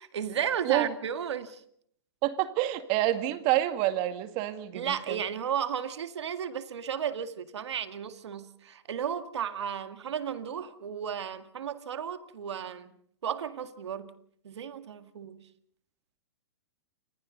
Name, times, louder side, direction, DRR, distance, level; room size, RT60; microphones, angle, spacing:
voice 1, 0.0-1.6 4.7-12.9 13.2-14.1 14.4-15.4, right 8 dB, 80° right, 2.0 m, -34 dB
voice 2, 2.2-5.2, right 14 dB, 40° right, 2.2 m, -28 dB
29.0 x 25.5 x 4.0 m
hypercardioid pair, 130°, 14 cm